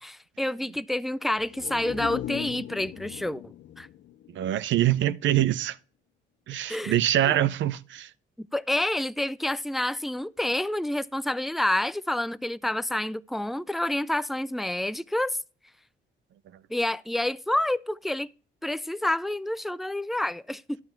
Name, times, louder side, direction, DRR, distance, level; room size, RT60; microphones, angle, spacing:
voice 1, 0.0-3.9 6.7-7.0 7.3-7.4 8.4-15.4 16.7-18.3 18.6-20.8, left 1 dB, ahead, 0.3 m, -28 dB
sound 1, 1.4-5.1 5.4-5.5, left 12 dB, 65° left, 0.7 m, -39 dB
voice 2, 4.3-5.8 6.5-8.1, right 12 dB, 70° right, 0.6 m, -24 dB
11.0 x 5.7 x 4.3 m
cardioid pair, 90°, 20 cm